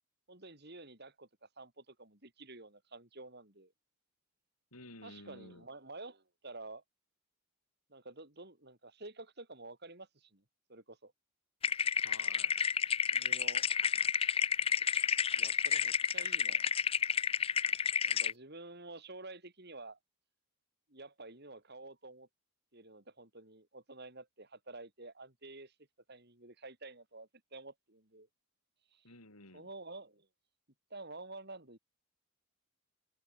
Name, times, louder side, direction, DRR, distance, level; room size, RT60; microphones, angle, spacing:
voice 1, 0.3-3.7 5.0-6.8 7.9-10.4 10.7-11.1 13.1-13.7 14.8-16.7 18.0-20.0 20.9-22.3 22.7-25.7 26.1-28.3 28.9-29.0 29.5-30.3 30.9-31.8, right 2 dB, 45° right, 3.5 m, -50 dB
voice 2, 4.7-5.7 12.0-12.6 29.0-29.7, left 2 dB, 85° left, 7.9 m, -53 dB
sound 1, 11.6-18.3, left 7 dB, 25° left, 0.5 m, -31 dB
head